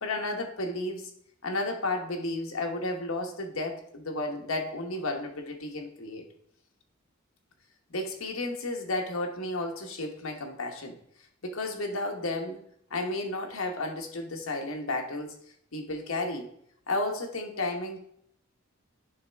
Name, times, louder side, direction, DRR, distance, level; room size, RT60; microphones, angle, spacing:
voice 1, 0.0-1.1 1.4-6.2 7.9-11.0 11.4-12.6 12.9-15.3 15.7-16.5 16.9-18.1, left 2 dB, 85° left, 3 dB, 1.3 m, -32 dB
10.5 x 3.6 x 3.5 m, 0.68 s
head